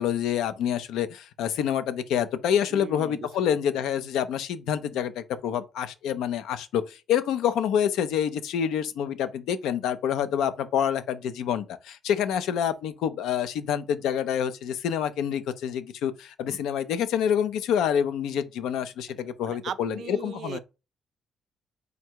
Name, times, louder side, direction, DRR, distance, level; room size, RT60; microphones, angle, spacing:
voice 1, 0.0-20.6, left 9 dB, 85° left, 0.4 m, -27 dB
voice 2, 2.7-3.6 19.5-20.6, right 7 dB, 65° right, 0.4 m, -38 dB
3.8 x 2.2 x 4.5 m
cardioid pair, 90°, 0 cm